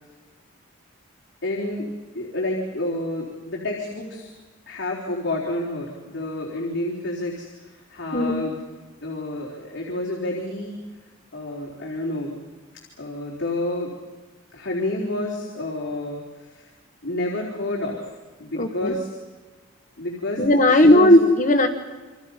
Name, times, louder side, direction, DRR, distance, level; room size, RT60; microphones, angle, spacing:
voice 1, 1.4-1.9 2.1-4.3 4.7-8.6 9.0-10.8 11.3-12.4 13.0-13.9 14.5-16.7 17.0-18.1 18.4-19.1 20.0-21.2, left 1 dB, 55° left, -3 dB, 4.1 m, -29 dB
voice 2, 8.1-8.5 18.5-19.0 20.4-21.7, left 1 dB, 40° left, 5 dB, 1.3 m, -16 dB
29.0 x 26.5 x 5.6 m, 1.3 s
head